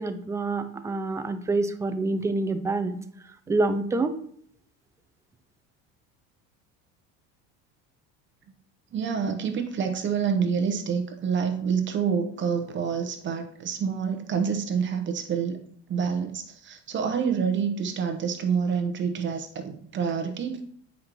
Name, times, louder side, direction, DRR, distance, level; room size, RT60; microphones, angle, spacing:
voice 1, 0.0-3.0 3.5-4.2, right 2 dB, 10° right, 9 dB, 0.4 m, -27 dB
voice 2, 8.9-15.6 15.9-20.6, right 6 dB, 35° right, 5 dB, 0.8 m, -27 dB
7.6 x 5.2 x 2.9 m, 0.63 s
cardioid pair, 120°, 32 cm